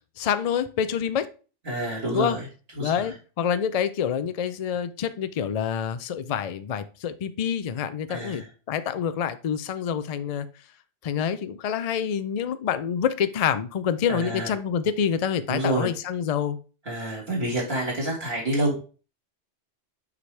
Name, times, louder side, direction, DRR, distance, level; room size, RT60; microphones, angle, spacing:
voice 1, 0.2-1.3 2.1-2.4 2.8-10.5 11.0-16.6, left 8 dB, 75° left, 12 dB, 0.3 m, -27 dB
voice 2, 1.7-2.5 2.7-3.1 8.1-8.5 14.1-14.5 15.5-15.9 16.9-18.9, right 1 dB, 55° right, -4 dB, 2.1 m, -28 dB
7.2 x 4.8 x 3.2 m, 0.35 s
omnidirectional pair, 1.2 m